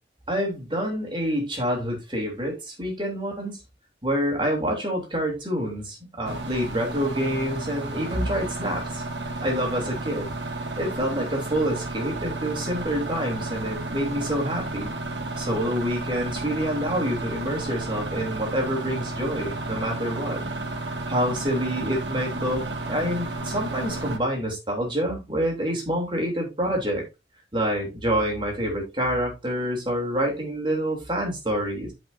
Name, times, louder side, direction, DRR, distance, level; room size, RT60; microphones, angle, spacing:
voice 1, 0.3-3.6 4.0-9.0 9.4-10.4 10.8-15.0 15.4-20.4 21.1-27.0 27.5-31.9, equal, 25° right, 0 dB, 3.2 m, -27 dB
sound 1, 6.3-24.2, right 2 dB, 80° right, 2.0 m, -32 dB
13.5 x 5.4 x 2.7 m, 0.25 s
head